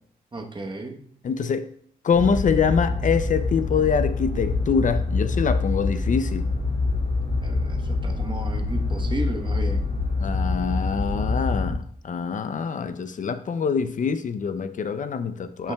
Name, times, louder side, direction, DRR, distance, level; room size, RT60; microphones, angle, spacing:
voice 1, 0.3-1.0 7.4-9.9 15.6-15.7, right 2 dB, 30° right, 3 dB, 1.0 m, -34 dB
voice 2, 1.2-1.7 2.0-6.5 10.2-15.7, left 6 dB, 55° left, 11 dB, 0.5 m, -25 dB
sound 1, 2.1-11.7, left 3 dB, 70° left, 2.7 m, -25 dB
11.0 x 5.7 x 2.3 m, 0.62 s
cardioid pair, 85°, 16 cm